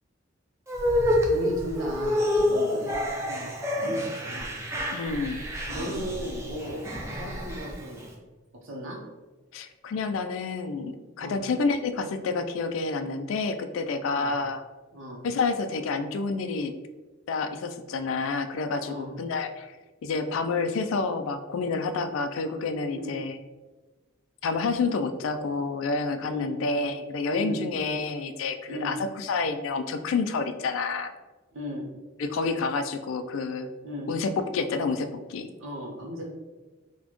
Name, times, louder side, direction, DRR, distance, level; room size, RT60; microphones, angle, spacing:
sound 1, 0.7-8.1, left 1 dB, 15° right, 0.5 m, -28 dB
voice 1, 1.3-4.5 5.7-8.1 8.6-9.0 11.2-11.4 14.1-14.4 14.9-15.2 18.8-19.1 22.9-23.2 26.2-26.5 27.3-27.7 28.7-29.0 31.5-31.9 33.8-34.1 35.6-36.3, equal, 75° right, -2 dB, 0.8 m, -36 dB
voice 2, 4.9-5.4 9.5-14.6 15.2-16.7 17.3-19.8 20.0-23.4 24.4-31.1 32.2-33.7 34.1-35.5, left 4 dB, 75° left, 9 dB, 0.3 m, -29 dB
4.0 x 2.2 x 3.0 m, 1.2 s
head